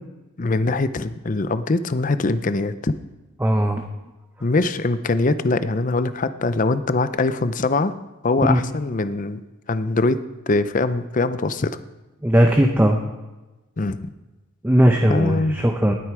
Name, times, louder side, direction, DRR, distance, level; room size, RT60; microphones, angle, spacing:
voice 1, 0.4-3.0 4.4-8.0 8.2-9.4 9.7-11.8 13.8-14.0 15.1-15.6, left 3 dB, 35° left, 12 dB, 0.5 m, -22 dB
voice 2, 3.4-3.9 8.5-8.6 12.2-13.0 14.6-15.9, equal, 10° right, 3 dB, 0.7 m, -18 dB
19.5 x 7.8 x 4.9 m, 1.1 s
head